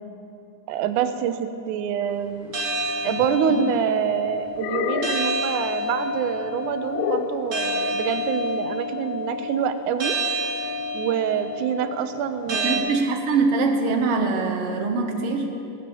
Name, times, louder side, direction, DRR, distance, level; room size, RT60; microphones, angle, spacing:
voice 1, 0.7-2.5 3.0-10.2 10.9-13.1, right 8 dB, 85° right, 9 dB, 2.2 m, -26 dB
sound 1, 2.5-12.8, left 1 dB, 35° right, 1.4 m, -29 dB
sound 2, 3.1-3.9 4.6-5.4 6.9-7.4, left 9 dB, 80° left, 1.8 m, -28 dB
voice 2, 12.5-15.5, right 4 dB, 60° right, 3 dB, 1.9 m, -23 dB
18.5 x 7.6 x 7.0 m, 2.8 s
omnidirectional pair, 3.5 m